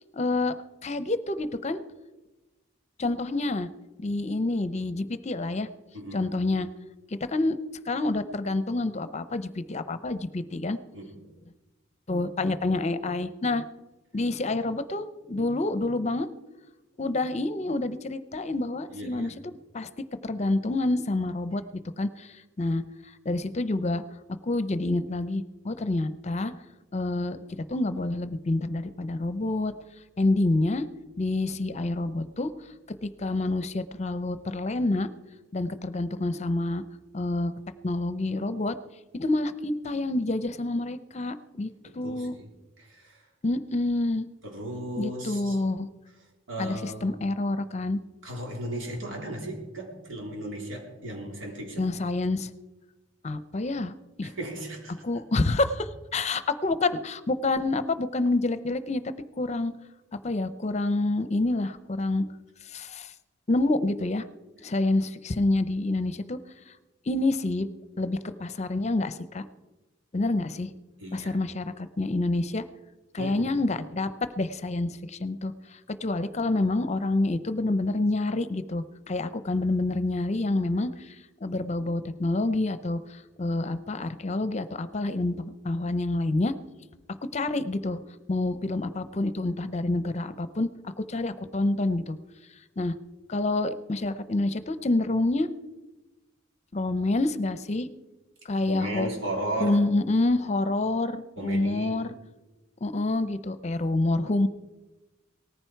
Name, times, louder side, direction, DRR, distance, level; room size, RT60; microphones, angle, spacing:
voice 1, 0.1-0.5 0.8-1.8 3.0-3.7 4.0-5.7 6.1-6.7 7.1-10.8 12.1-13.6 14.1-16.3 17.0-19.3 19.7-19.9 20.2-21.6 22.0-22.8 23.2-24.0 24.4-26.5 26.9-29.7 30.2-30.9 31.2-32.5 33.0-35.1 35.5-36.8 37.1-37.5 37.8-38.8 39.1-41.7 41.9-42.3 43.4-44.2 45.0-45.9 46.6-48.0 51.8-52.5 53.2-54.3 54.9-59.7 60.2-62.2 62.7-63.1 63.5-64.2 64.6-66.4 67.1-67.7 68.0-69.5 70.1-70.7 71.1-72.6 73.1-74.1 74.4-81.1 81.4-86.5 87.3-88.0 88.3-92.2 92.8-92.9 93.3-95.5 96.7-97.9 98.5-99.1 99.6-102.1 102.8-104.5, left 2 dB, 35° left, 13 dB, 0.7 m, -27 dB
voice 2, 5.9-6.3 10.9-11.2 18.9-19.3 41.8-43.2 44.4-45.6 46.5-47.2 48.2-51.9 54.2-55.1 71.0-71.4 73.2-73.6 98.7-99.8 101.4-102.1, right 1 dB, 90° right, 1 dB, 3.8 m, -36 dB
18.5 x 14.5 x 4.6 m, 1.1 s
head